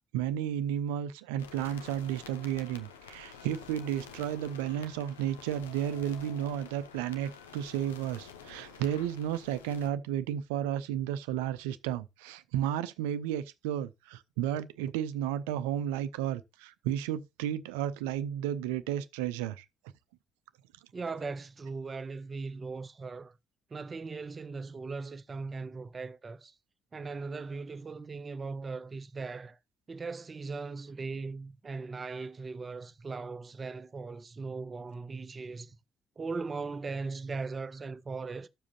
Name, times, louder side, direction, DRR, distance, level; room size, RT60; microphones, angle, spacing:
voice 1, 0.1-19.6, right 10 dB, 70° right, 0.6 m, -33 dB
sound 1, 1.4-9.9, left 7 dB, 75° left, 0.7 m, -49 dB
voice 2, 20.9-23.4 23.7-26.5 26.9-29.6 29.9-35.8 36.2-38.5, right 4 dB, 30° right, 0.7 m, -39 dB
12.0 x 7.3 x 2.8 m
figure-of-eight pair, 45°, 0 cm